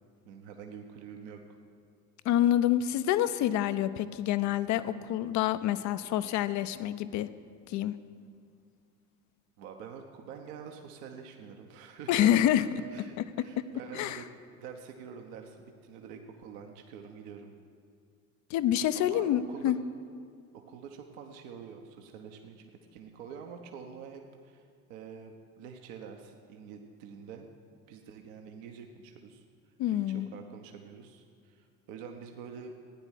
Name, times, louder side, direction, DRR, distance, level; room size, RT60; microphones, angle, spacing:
voice 1, 0.2-1.4 9.6-14.3 14.6-17.5 19.0-19.7 20.5-27.5 27.9-29.4 29.9-32.7, right 6 dB, 60° right, 3 dB, 1.2 m, -46 dB
voice 2, 2.2-7.3 7.7-7.9 12.1-12.7 13.2-13.3 13.6-13.7 13.9-14.2 18.5-19.8 29.8-30.3, left 12 dB, 40° left, 13 dB, 0.6 m, -27 dB
15.0 x 9.8 x 6.5 m, 2.2 s
figure-of-eight pair, 65°, 46 cm